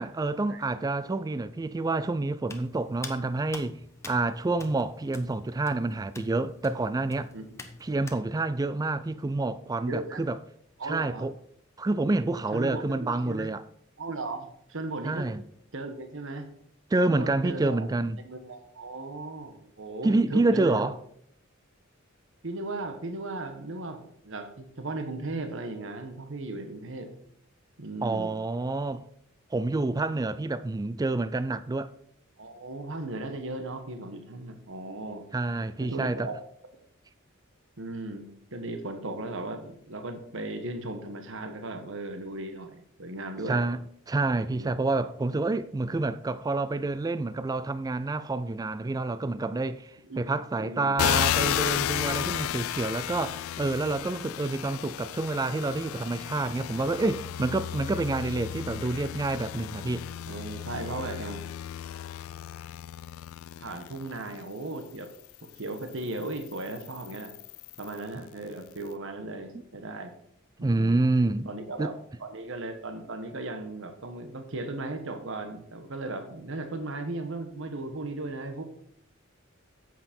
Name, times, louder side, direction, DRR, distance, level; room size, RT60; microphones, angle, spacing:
voice 1, 0.0-3.8 4.1-7.3 7.8-10.4 10.8-11.3 11.8-13.6 15.0-15.4 16.9-18.2 20.0-20.9 28.0-29.0 29.5-31.9 35.3-36.3 43.5-43.8 44.1-49.9 50.2-60.0 70.6-71.5 71.8-71.9, right 2 dB, 20° right, 0.3 m, -28 dB
Hands, 2.4-8.2, left 2 dB, 15° left, 1.0 m, -45 dB
voice 2, 9.9-10.2 10.8-11.3 12.5-13.5 14.0-15.3 15.7-16.5 17.1-17.9 18.2-20.9 22.4-27.1 27.8-28.4 32.4-35.2 35.8-36.4 37.8-43.6 44.6-44.7 50.1-50.2 50.6-50.9 60.3-61.4 63.6-65.1 65.4-67.3 67.8-70.1 70.6-71.0 71.4-71.9 72.2-78.6, right 2 dB, 65° right, 1.2 m, -36 dB
sound 1, 51.0-64.4 65.0-68.0, left 11 dB, 80° left, 0.3 m, -33 dB
9.3 x 7.7 x 4.4 m
head